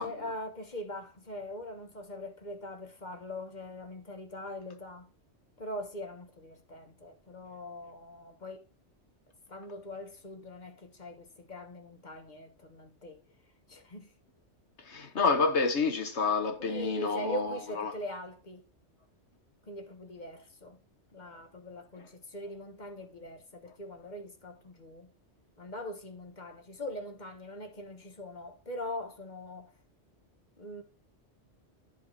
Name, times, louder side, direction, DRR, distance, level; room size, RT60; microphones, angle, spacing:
voice 1, 0.0-5.1 5.6-8.6 9.5-13.2 13.7-14.1 16.6-18.7 19.6-20.8 21.1-25.1 25.6-29.7 30.6-30.8, left 1 dB, 40° left, 1.4 m, -42 dB
voice 2, 14.8-17.9, left 4 dB, 70° left, 1.6 m, -29 dB
10.5 x 3.7 x 6.5 m
omnidirectional pair, 1.2 m